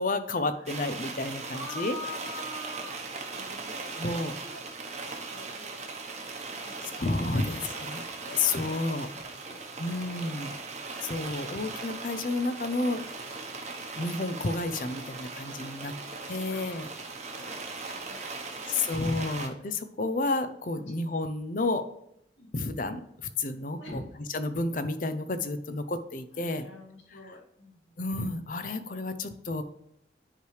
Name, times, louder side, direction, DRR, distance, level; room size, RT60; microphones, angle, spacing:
voice 1, 0.0-2.0 4.0-4.3 7.0-8.0 8.3-9.1 9.8-10.6 11.0-13.0 13.9-15.9 16.3-16.9 18.7-21.8 22.5-24.0 24.3-26.7 28.0-29.6, left 2 dB, 45° left, 10 dB, 0.6 m, -31 dB
voice 2, 0.6-0.9 1.5-5.8 6.6-7.1 7.4-9.6 9.9-10.0 15.8-16.9 17.3-19.0 20.7-21.1 22.4-22.5 23.8-24.2 26.4-28.0, left 1 dB, 90° left, -2 dB, 2.4 m, -46 dB
sound 1, 0.7-19.5, right 3 dB, 35° right, 1.0 m, -39 dB
9.8 x 4.8 x 3.3 m, 0.75 s
head